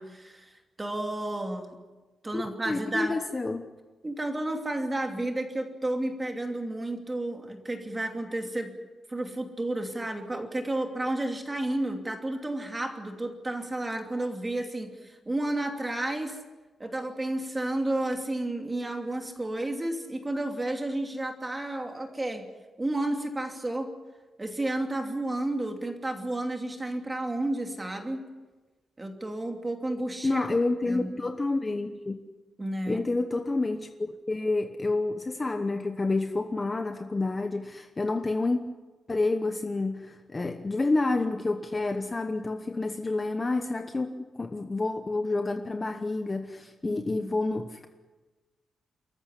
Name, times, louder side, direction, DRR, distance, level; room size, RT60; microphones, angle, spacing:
voice 1, 0.0-1.8 2.2-3.2 4.0-8.7 9.1-16.4 16.8-22.5 22.8-23.9 24.4-28.2 29.0-30.4 30.9-31.1 32.6-33.1 46.8-47.4, right 1 dB, 15° right, 4 dB, 2.8 m, -32 dB
voice 2, 2.3-3.7 30.2-32.2 32.9-38.7 39.1-47.9, left 2 dB, 20° left, 7 dB, 1.0 m, -29 dB
29.5 x 14.5 x 10.0 m, 1.3 s
wide cardioid pair, 170°, 0 cm